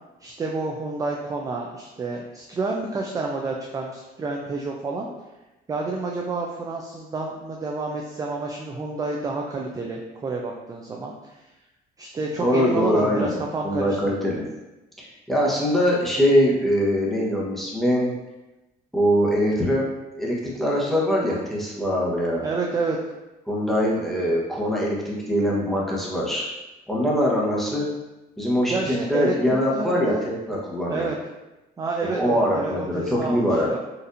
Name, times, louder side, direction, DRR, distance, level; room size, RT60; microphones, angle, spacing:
voice 1, 0.2-5.1 5.7-11.1 12.0-14.0 22.4-23.0 28.7-30.2 30.9-31.2 31.8-33.8, right 3 dB, 20° right, 0 dB, 0.3 m, -29 dB
voice 2, 12.4-13.3 13.6-14.4 15.0-18.1 18.9-19.9 20.2-22.4 23.5-26.5 26.9-27.9 28.4-31.1 32.1-33.7, equal, ahead, -5 dB, 0.9 m, -23 dB
4.2 x 2.6 x 2.5 m, 1.0 s
cardioid pair, 110°, 17 cm